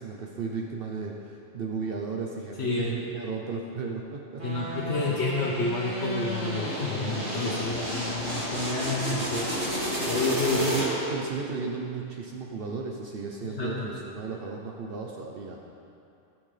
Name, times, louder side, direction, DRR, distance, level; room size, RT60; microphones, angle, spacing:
voice 1, 0.0-4.8 10.5-15.6, right 4 dB, 60° right, 0 dB, 0.9 m, -34 dB
voice 2, 2.6-2.9 4.4-9.5 10.0-10.6 13.6-13.9, left 3 dB, 70° left, -4 dB, 1.2 m, -29 dB
sound 1, 4.4-11.2, equal, 90° right, 2.8 m, -31 dB
16.0 x 6.2 x 3.3 m, 2.6 s
omnidirectional pair, 1.1 m